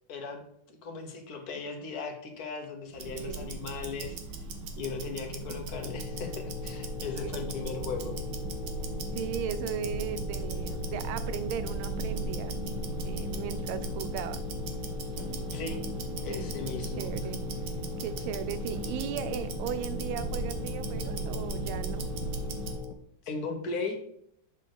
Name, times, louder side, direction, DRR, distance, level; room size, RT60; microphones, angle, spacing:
voice 1, 0.1-0.4 0.7-4.2 4.8-8.1 15.5-15.8 16.2-17.1 23.2-24.0, left 4 dB, 55° left, 4 dB, 1.3 m, -37 dB
Tick-tock, 2.9-22.9, right 3 dB, 65° right, 1.3 m, -36 dB
voice 2, 3.1-3.5 5.0-5.1 7.2-7.5 9.1-12.5 13.0-14.4 16.3-16.5 17.0-17.4 18.0-22.1, right 9 dB, 80° right, 12 dB, 1.4 m, -37 dB
sound 1, 5.7-22.9, left 9 dB, 80° left, 1.5 m, -41 dB
7.4 x 4.1 x 4.9 m, 0.70 s
omnidirectional pair, 2.3 m